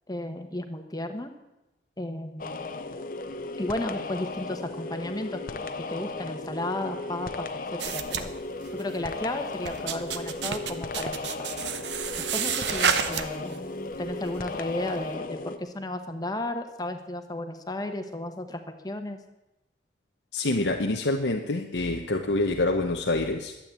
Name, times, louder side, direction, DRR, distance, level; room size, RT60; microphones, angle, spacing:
voice 1, 0.1-1.3 2.0-2.7 3.6-7.5 7.7-8.3 8.7-11.5 12.3-19.2, left 1 dB, 20° left, 7 dB, 1.2 m, -34 dB
sound 1, 2.4-15.6, left 3 dB, 50° left, 0.8 m, -36 dB
sound 2, 7.8-9.0 9.4-13.6 13.9-14.4, right 7 dB, 80° right, 1.0 m, -30 dB
voice 2, 20.3-23.5, left 2 dB, 90° left, 3 dB, 0.9 m, -26 dB
12.5 x 8.6 x 8.6 m, 0.96 s
head